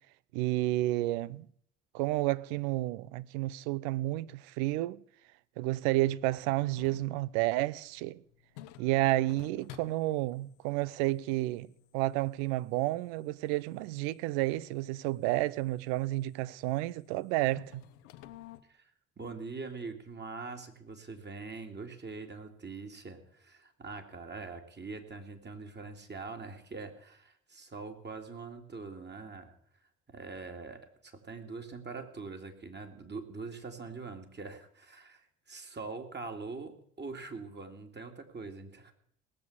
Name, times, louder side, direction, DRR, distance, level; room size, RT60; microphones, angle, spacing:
voice 1, 0.3-1.5 1.9-5.0 5.6-8.2 8.8-17.8, right 17 dB, 70° right, 0.6 m, -31 dB
sound 1, 6.3-18.6, left 13 dB, 75° left, 1.0 m, -56 dB
voice 2, 18.7-29.5 30.1-38.9, right 4 dB, 30° right, 2.7 m, -43 dB
18.5 x 7.6 x 8.3 m
figure-of-eight pair, 50°, 35 cm